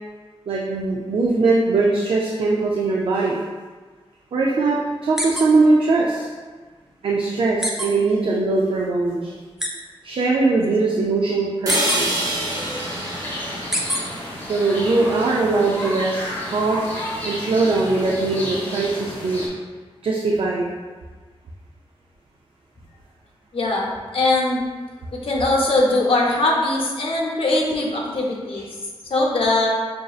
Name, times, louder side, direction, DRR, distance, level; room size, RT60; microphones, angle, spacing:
voice 1, 0.5-3.4 4.3-6.3 7.0-9.3 10.0-12.1 13.6-13.7 14.5-16.9 17.2-19.4 20.0-20.7 28.5-28.6, right 3 dB, 60° right, -3 dB, 0.4 m, -21 dB
sound 1, 5.2-5.4 5.9-6.0 7.6-7.9 9.6-9.7 11.7-12.0 13.7-14.0, equal, 5° right, 0.5 m, -23 dB
sound 2, 11.7-15.7, right 1 dB, 35° right, 0.9 m, -28 dB
sound 3, 11.9-19.5, equal, 20° left, 1.0 m, -32 dB
voice 2, 23.5-24.6 25.1-28.6 29.1-29.7, left 2 dB, 60° left, -2 dB, 0.8 m, -21 dB
5.7 x 2.6 x 2.4 m, 1.4 s
wide cardioid pair, 120°, 10 cm